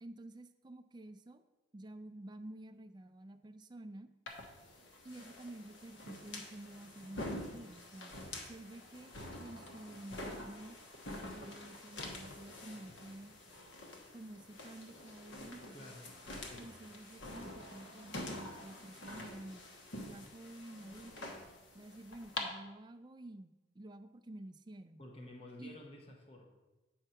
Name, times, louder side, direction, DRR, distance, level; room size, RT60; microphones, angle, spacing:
voice 1, 0.0-1.4 1.7-4.1 5.0-8.1 8.4-10.8 11.1-13.4 14.1-15.9 16.6-19.6 20.0-21.3 21.7-25.0 25.6-25.7, right 1 dB, 20° right, 9 dB, 0.4 m, -51 dB
sound 1, 4.3-22.4, left 1 dB, 75° left, 1.2 m, -47 dB
voice 2, 15.7-16.1 16.4-16.6 25.0-26.5, left 1 dB, 30° left, 1 dB, 1.0 m, -51 dB
7.9 x 4.5 x 5.7 m, 1.1 s
head